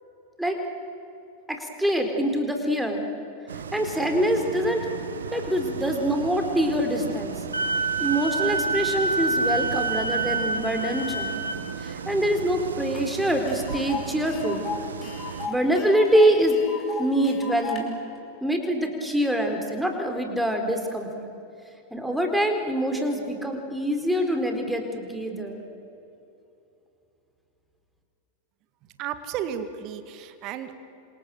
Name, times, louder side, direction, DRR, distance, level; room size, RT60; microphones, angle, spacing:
voice 1, 1.5-3.0 3.7-4.9 5.3-7.3 8.0-11.4 11.8-14.6 15.5-16.6 17.0-17.9 18.4-21.3 21.9-25.6, equal, 5° right, 4 dB, 4.3 m, -25 dB
sound 1, 3.5-15.5, right 6 dB, 70° right, 1.3 m, -36 dB
Wind instrument woodwind instrument, 7.5-11.6, right 3 dB, 85° right, 2.3 m, -27 dB
Tick, 12.9-13.0 13.3-17.8, left 5 dB, 25° left, 5.0 m, -36 dB
voice 2, 29.0-30.7, right 9 dB, 40° right, 9 dB, 2.1 m, -33 dB
29.0 x 26.5 x 7.7 m, 2.8 s
figure-of-eight pair, 90°, 0 cm